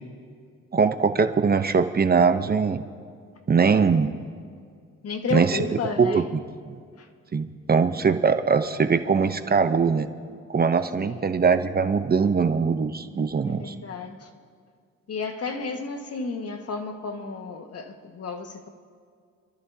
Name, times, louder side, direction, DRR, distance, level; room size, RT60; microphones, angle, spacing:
voice 1, 0.7-2.8 3.5-4.2 5.3-5.6 6.0-6.2 7.3-10.1 10.5-13.7, right 5 dB, 30° right, 9 dB, 0.8 m, -21 dB
voice 2, 5.0-6.3 7.0-7.1 11.0-11.3 13.4-14.3 15.1-18.7, left 4 dB, 55° left, 5 dB, 1.6 m, -32 dB
27.5 x 13.5 x 2.8 m, 2.1 s
cardioid pair, 90°, 30 cm